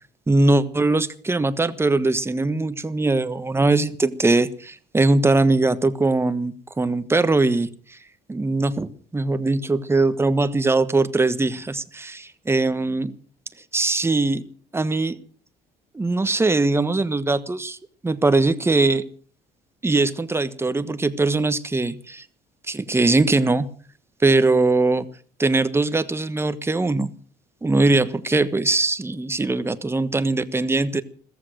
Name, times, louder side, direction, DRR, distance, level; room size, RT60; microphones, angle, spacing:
voice 1, 0.3-7.7 8.3-13.1 13.7-14.5 14.7-15.2 15.9-17.8 18.0-19.0 19.8-22.2 22.7-23.7 24.2-25.1 25.4-27.1 27.6-31.0, right 2 dB, 15° right, 13 dB, 1.3 m, -21 dB
15.0 x 14.5 x 6.3 m, 0.42 s
cardioid pair, 110°, 17 cm